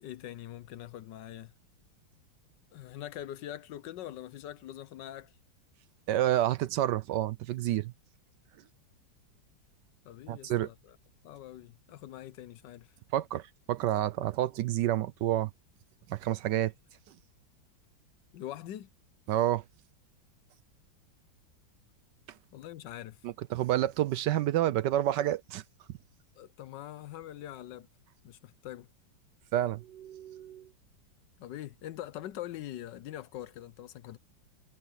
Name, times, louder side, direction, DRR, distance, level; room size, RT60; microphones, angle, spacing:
voice 1, 0.0-1.5 2.7-5.3 10.0-11.0 11.2-12.9 18.3-18.9 22.5-23.2 26.3-27.9 28.2-28.9 31.4-34.2, left 12 dB, 70° left, 1.3 m, -43 dB
voice 2, 6.1-7.9 10.3-10.7 13.1-15.5 16.1-16.7 19.3-19.6 23.2-25.6 29.5-30.7, right 13 dB, 75° right, 1.2 m, -29 dB
omnidirectional pair, 2.1 m